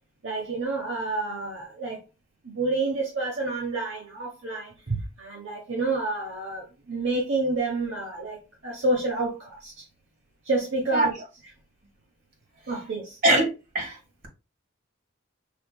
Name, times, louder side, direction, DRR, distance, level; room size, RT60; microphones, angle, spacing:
voice 1, 0.2-2.0 2.4-8.4 8.6-9.8 10.4-11.1 12.7-13.2, right 2 dB, 65° right, 1.0 m, -29 dB
voice 2, 13.2-14.0, right 1 dB, 45° right, 1.7 m, -22 dB
6.4 x 3.0 x 2.2 m
head